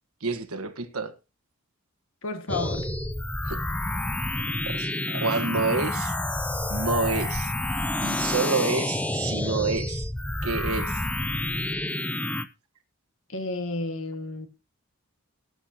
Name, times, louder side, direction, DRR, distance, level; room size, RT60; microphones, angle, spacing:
voice 1, 0.2-1.1 3.4-3.6 4.7-6.1 6.7-7.5 8.0-10.1 10.4-11.0, right 3 dB, 75° right, 1.4 m, -28 dB
voice 2, 2.2-2.9 13.3-14.5, left 2 dB, 65° left, 1.9 m, -31 dB
sound 1, 2.5-12.4, left 1 dB, 5° left, 0.5 m, -29 dB
18.0 x 9.4 x 2.9 m
head